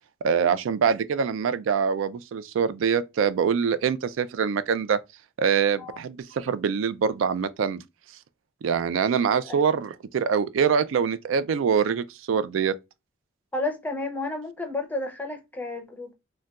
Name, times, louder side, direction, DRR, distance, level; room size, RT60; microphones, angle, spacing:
voice 1, 0.2-5.0 5.4-7.8 8.6-12.8, right 6 dB, 70° right, 0.3 m, -24 dB
voice 2, 13.5-16.1, left 2 dB, 10° left, 0.5 m, -32 dB
3.8 x 2.2 x 2.3 m
head